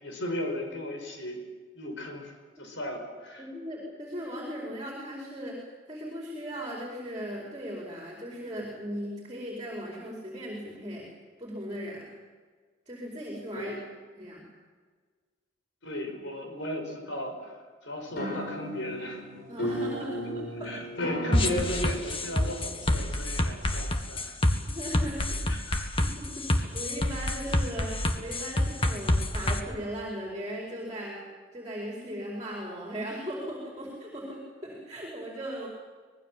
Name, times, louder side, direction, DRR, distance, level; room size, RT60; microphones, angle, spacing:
voice 1, 0.0-1.4 1.7-2.3 2.6-3.4 13.5-13.8 15.8-17.5 17.8-19.2 20.6-24.4 25.5-25.9, left 1 dB, 75° left, 4 dB, 5.6 m, -35 dB
voice 2, 3.4-5.6 5.9-11.1 11.4-12.0 12.9-13.7 14.2-14.4 19.5-20.7 24.7-25.4 26.0-31.2 31.5-35.7, equal, 20° right, -2 dB, 4.8 m, -38 dB
sound 1, 18.1-23.3, equal, 55° left, 7.4 m, -36 dB
sound 2, 21.3-29.6, left 1 dB, 30° left, 1.8 m, -27 dB
25.5 x 19.5 x 7.7 m, 1.5 s
head